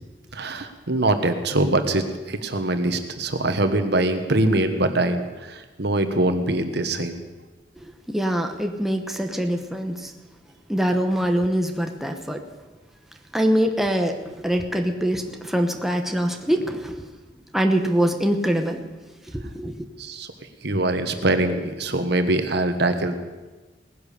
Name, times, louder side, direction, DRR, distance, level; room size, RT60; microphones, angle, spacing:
voice 1, 0.3-7.2 20.0-20.3 20.6-23.2, right 2 dB, 65° right, 8 dB, 1.3 m, -23 dB
voice 2, 7.8-10.1 10.7-12.5 13.3-17.1 17.5-18.8 19.3-19.8, equal, ahead, 4 dB, 1.0 m, -24 dB
18.0 x 10.5 x 6.8 m, 1.2 s
head